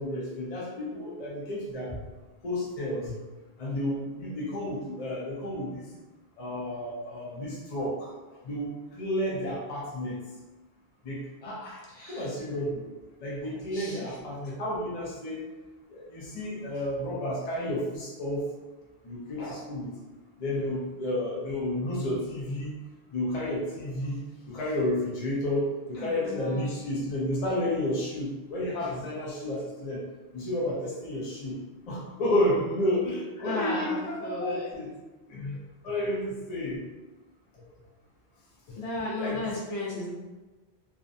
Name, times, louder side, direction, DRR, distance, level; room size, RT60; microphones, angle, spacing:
voice 1, 0.0-2.0 2.4-3.2 3.6-5.9 6.4-8.1 8.4-10.2 11.0-11.8 12.1-12.9 13.2-15.5 15.9-18.4 19.0-19.9 20.4-22.7 23.1-24.2 24.5-30.0 30.3-34.9 35.3-35.6 35.8-36.8 39.2-39.5, left 1 dB, 45° left, -5 dB, 0.6 m, -31 dB
voice 2, 12.0-12.3 13.7-14.1 26.0-26.7 33.4-34.7 38.8-40.1, left 2 dB, 75° left, -4 dB, 0.9 m, -34 dB
2.5 x 2.1 x 2.5 m, 1.2 s
omnidirectional pair, 1.1 m